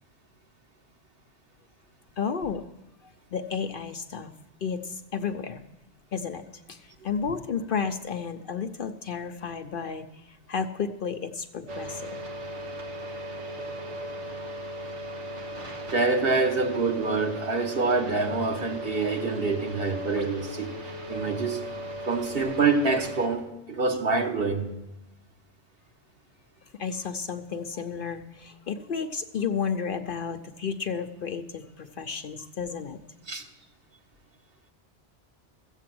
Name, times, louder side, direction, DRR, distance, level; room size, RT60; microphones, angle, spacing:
voice 1, 2.2-2.7 3.3-4.3 4.6-5.6 6.1-12.2 26.8-33.0, left 6 dB, 55° left, 0.7 m, -32 dB
sound 1, 11.7-23.3, equal, 85° right, 1.9 m, -37 dB
voice 2, 15.9-20.7 21.1-21.6 22.1-24.7 33.3-33.4, right 4 dB, 55° right, 1.4 m, -26 dB
14.0 x 8.1 x 7.7 m
omnidirectional pair, 1.2 m